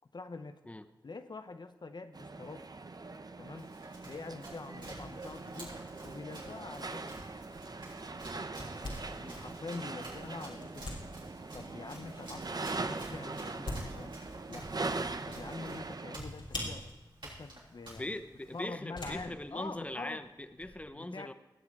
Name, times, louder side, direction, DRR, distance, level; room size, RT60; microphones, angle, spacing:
voice 1, 0.1-0.6 1.0-2.7 3.4-3.7 4.0-7.3 9.2-11.1 11.5-14.2 14.5-14.8 15.3-16.9 17.2-18.2 18.5-20.2 20.9-21.3, left 3 dB, 60° left, 9 dB, 0.7 m, -45 dB
sound 1, 2.1-16.2, right 3 dB, 50° right, 0.7 m, -41 dB
Run, 3.5-18.7, right 1 dB, 75° right, 5.5 m, -52 dB
sound 2, 7.3-20.8, left 1 dB, 85° left, 3.1 m, -47 dB
voice 2, 17.9-21.3, left 1 dB, 15° left, 10 dB, 0.8 m, -41 dB
19.0 x 7.5 x 4.7 m, 1.1 s
cardioid pair, 45°, 8 cm